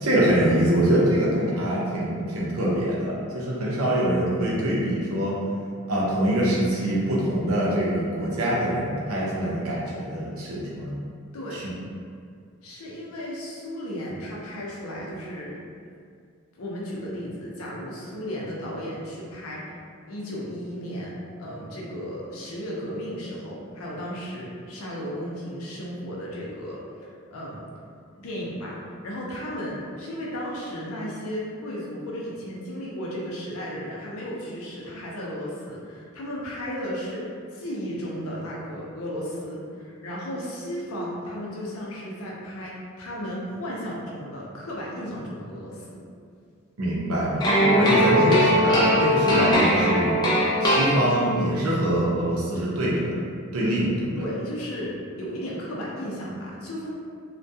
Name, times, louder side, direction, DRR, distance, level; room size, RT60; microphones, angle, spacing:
voice 1, 0.0-5.4 5.9-10.9 11.5-11.7 46.8-50.2 50.6-53.1 53.5-54.2, right 1 dB, 90° right, -5 dB, 0.6 m, -24 dB
voice 2, 12.6-15.6 16.5-19.6 20.1-26.8 27.0-27.7 28.2-46.0 54.2-56.9, equal, 90° left, -4 dB, 0.6 m, -34 dB
sound 1, 47.4-51.5, equal, 20° left, 0.3 m, -20 dB
2.3 x 2.2 x 2.6 m, 2.2 s
head